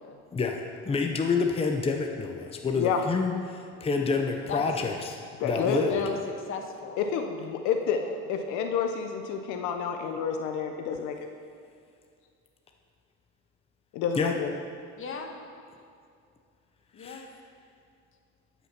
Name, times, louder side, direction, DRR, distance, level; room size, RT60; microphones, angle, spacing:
voice 1, 0.3-5.9 14.2-14.3 17.0-17.3, left 4 dB, 20° left, 3 dB, 0.8 m, -28 dB
voice 2, 4.5-5.0 5.6-6.2 6.5-7.1 7.9-8.2 15.0-15.3 16.9-17.3, left 6 dB, 40° left, 3 dB, 1.5 m, -37 dB
voice 3, 5.4-6.1 7.0-8.0 8.3-11.1 13.9-14.5, left 7 dB, 70° left, 5 dB, 0.9 m, -29 dB
12.0 x 5.9 x 5.9 m, 2.4 s
supercardioid pair, 100°, 31 cm